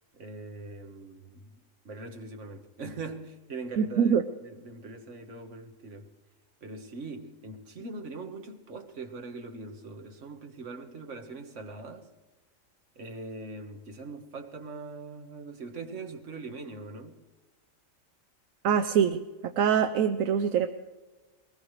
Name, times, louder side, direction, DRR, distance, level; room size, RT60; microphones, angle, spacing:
voice 1, 0.1-1.5 1.9-6.1 6.6-12.1 13.0-17.2, right 3 dB, 65° right, 1.7 m, -42 dB
voice 2, 3.8-4.2 18.6-19.2 19.6-20.7, right 8 dB, 80° right, 1.1 m, -24 dB
22.0 x 19.5 x 3.2 m
omnidirectional pair, 1.4 m